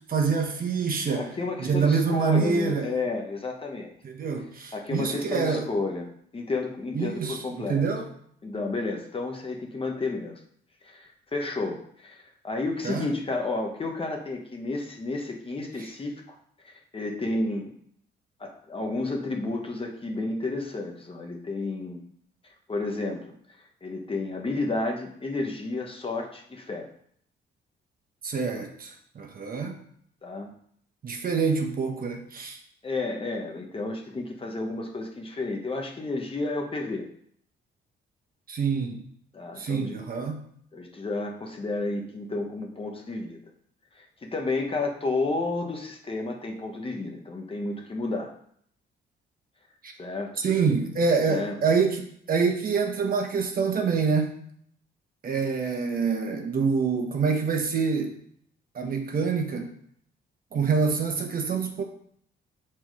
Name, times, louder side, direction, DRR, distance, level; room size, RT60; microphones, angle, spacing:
voice 1, 0.1-1.3 1.6-3.0 4.0-5.7 6.9-8.0 12.8-13.1 15.8-15.9 28.2-29.8 31.0-32.6 38.5-39.0 39.6-40.4 49.8-49.9 50.4-54.3 55.2-58.1 58.7-59.7 60.5-61.8, right 5 dB, 45° right, 3 dB, 1.2 m, -26 dB
voice 2, 1.1-3.9 4.7-6.1 6.3-7.9 8.4-10.4 10.8-16.4 16.6-17.7 18.4-22.0 22.7-23.2 23.8-26.9 30.2-30.5 32.8-37.1 39.3-39.9 40.7-43.4 44.0-48.3 50.0-50.4 51.3-51.5, left 3 dB, 25° left, 2 dB, 1.2 m, -31 dB
6.0 x 4.4 x 4.8 m, 0.65 s
cardioid pair, 90°, 20 cm